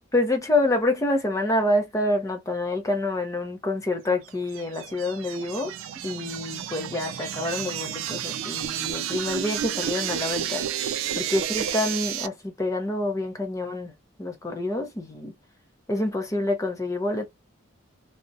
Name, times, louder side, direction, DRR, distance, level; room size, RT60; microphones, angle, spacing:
voice 1, 0.1-5.8 6.0-10.8 11.2-13.9 14.2-15.3 15.9-17.2, left 2 dB, 15° left, 0.5 m, -27 dB
sound 1, 4.3-12.3, right 10 dB, 80° right, 0.3 m, -31 dB
2.4 x 2.1 x 2.5 m
head